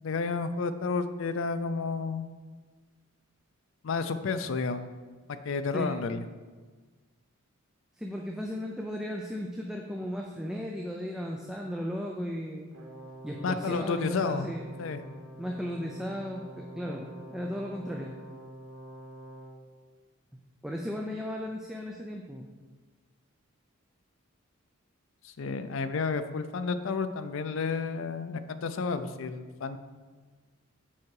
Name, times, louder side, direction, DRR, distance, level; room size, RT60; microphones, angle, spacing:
voice 1, 0.0-2.3 3.8-4.8 5.3-6.2 13.4-14.5 14.8-15.0 25.2-29.8, left 4 dB, 65° left, 10 dB, 0.4 m, -31 dB
voice 2, 8.0-12.7 13.2-14.7 15.4-18.1 20.6-22.5, equal, 5° right, 0 dB, 0.4 m, -35 dB
Brass instrument, 12.7-19.6, right 1 dB, 75° right, 1.1 m, -46 dB
7.3 x 4.7 x 4.7 m, 1.4 s
head